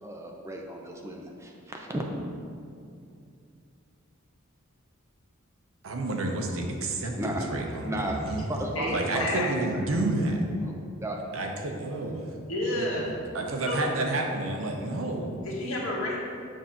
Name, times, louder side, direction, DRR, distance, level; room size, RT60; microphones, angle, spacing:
voice 1, 0.0-2.0 7.1-8.2 8.5-10.1 10.6-10.7 11.0-11.2, right 1 dB, 15° right, 1 dB, 0.5 m, -35 dB
voice 2, 5.8-8.5 8.9-10.4 11.3-12.3 12.8-15.3, right 2 dB, 75° right, 2 dB, 0.8 m, -30 dB
voice 3, 8.7-9.5 12.5-13.1 13.7-13.8 15.4-16.2, left 1 dB, 75° left, -4 dB, 1.4 m, -30 dB
7.4 x 2.8 x 5.7 m, 2.4 s
head